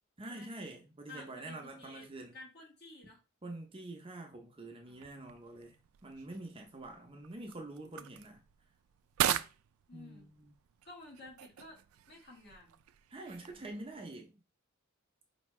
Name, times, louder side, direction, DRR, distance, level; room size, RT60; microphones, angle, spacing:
voice 1, 0.2-2.3 3.4-5.8 6.0-8.4 9.9-10.3 13.1-14.3, right 2 dB, 25° right, 0.6 m, -46 dB
voice 2, 1.1-2.1 2.3-3.2 4.8-5.2 6.5-7.2 9.9-10.3 10.8-11.8 12.1-12.8, left 2 dB, 55° left, 1.6 m, -53 dB
sound 1, 4.9-14.0, right 11 dB, 90° right, 0.3 m, -41 dB
4.4 x 2.8 x 3.1 m
head